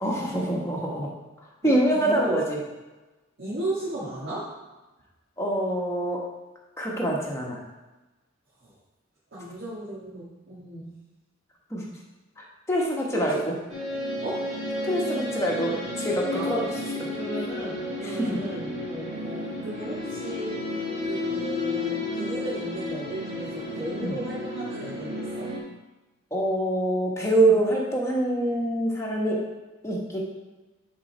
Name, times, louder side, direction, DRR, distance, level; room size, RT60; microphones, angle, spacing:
voice 1, 0.0-1.1 1.6-2.6 5.4-6.2 6.8-7.6 11.7-11.8 12.7-13.4 14.8-16.7 17.0-17.1 18.0-18.2 24.0-24.1 26.3-29.4 29.8-30.2, right 1 dB, 15° left, -3 dB, 1.3 m, -25 dB
voice 2, 1.6-2.4 3.4-4.5 8.6-8.7 9.3-10.9 13.3-13.5 14.2-14.5 16.3-16.6 17.1-25.5, right 1 dB, 60° right, -8 dB, 1.7 m, -35 dB
sound 1, 13.7-25.6, left 2 dB, 35° right, 1.8 m, -32 dB
9.6 x 3.9 x 4.4 m, 1.1 s
head